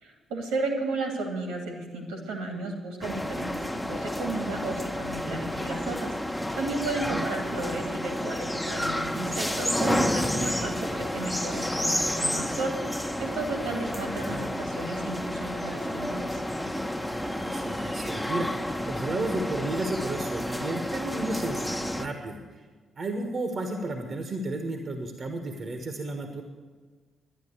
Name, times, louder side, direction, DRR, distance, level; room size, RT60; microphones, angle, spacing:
voice 1, 0.0-6.2 6.5-12.8 13.2-16.4, right 2 dB, 80° right, 3 dB, 2.5 m, -33 dB
sound 1, 3.0-22.1, left 1 dB, 5° left, 1.1 m, -30 dB
voice 2, 17.2-22.6 23.0-26.4, right 2 dB, 50° right, 5 dB, 1.5 m, -33 dB
10.5 x 10.5 x 8.1 m, 1.4 s
hypercardioid pair, 40°, 0 cm